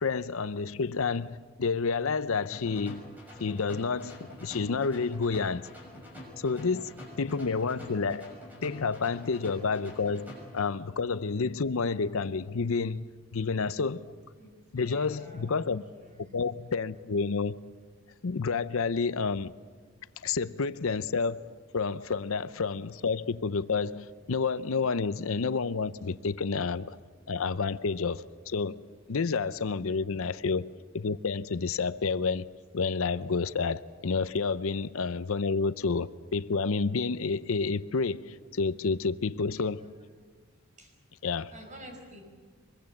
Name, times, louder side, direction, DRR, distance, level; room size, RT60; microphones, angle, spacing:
voice 1, 0.0-3.0 3.4-5.7 6.4-6.9 7.2-8.3 8.6-14.1 14.7-15.8 16.3-17.6 18.2-19.5 20.2-27.0 27.3-28.8 29.1-32.5 32.7-39.8 41.2-41.5, left 4 dB, 70° left, 0.6 m, -30 dB
sound 1, 2.5-10.6, left 1 dB, 10° right, 6.4 m, -47 dB
voice 2, 14.4-15.6 15.9-16.4 20.1-20.3 29.9-30.3 39.4-39.9 40.8-41.0 41.5-42.2, equal, 35° right, 5.6 m, -50 dB
24.0 x 22.5 x 7.8 m
head